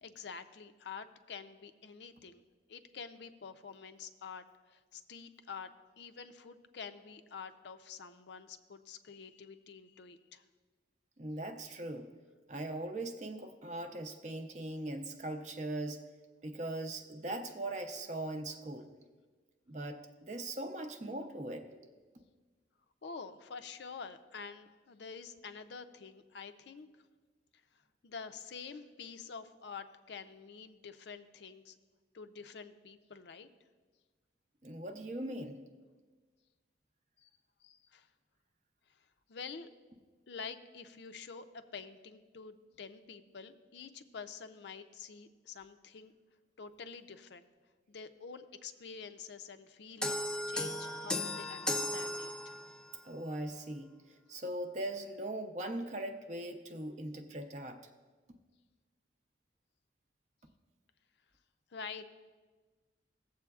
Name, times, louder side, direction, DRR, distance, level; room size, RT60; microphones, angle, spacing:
voice 1, 0.0-2.4 2.7-5.7 6.0-10.4 23.0-26.9 28.0-31.8 32.1-33.5 37.2-37.3 37.6-38.1 38.9-39.0 39.3-39.7 40.3-46.1 46.6-47.5 47.9-52.5 61.7-62.1, left 5 dB, 65° left, 9 dB, 0.5 m, -48 dB
voice 2, 11.2-12.1 12.5-16.0 16.4-18.9 19.7-21.7 34.6-35.6 53.0-53.9 54.3-57.8, right 1 dB, 40° right, 6 dB, 0.6 m, -40 dB
sound 1, 50.0-52.9, left 1 dB, 5° left, 0.3 m, -36 dB
16.5 x 7.6 x 2.4 m, 1.4 s
head